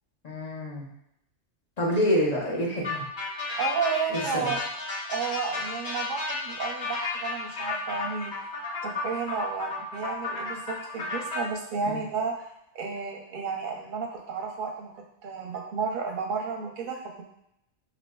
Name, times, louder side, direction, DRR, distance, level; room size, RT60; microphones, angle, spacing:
voice 1, 0.2-0.9 1.8-3.0 4.1-4.5 11.8-12.0, equal, 40° left, -4 dB, 0.7 m, -27 dB
sound 1, 2.8-11.4, left 3 dB, 65° left, 1.3 m, -33 dB
voice 2, 3.6-4.6 5.1-8.3 8.8-12.5 12.7-17.2, right 5 dB, 55° right, 1 dB, 0.7 m, -32 dB
4.3 x 2.7 x 2.2 m, 0.77 s
omnidirectional pair, 1.2 m